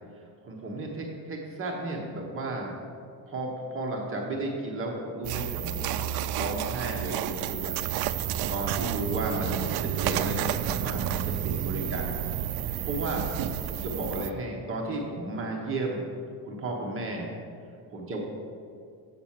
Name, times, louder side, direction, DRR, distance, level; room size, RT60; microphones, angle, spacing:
voice 1, 0.1-2.7 3.3-7.7 8.5-12.1 12.8-16.0 16.4-17.3 17.9-18.2, right 2 dB, 35° right, -1 dB, 1.0 m, -34 dB
sound 1, 5.2-14.3, right 10 dB, 85° right, 0.5 m, -30 dB
7.4 x 5.9 x 7.3 m, 2.4 s
cardioid pair, 175°, 38 cm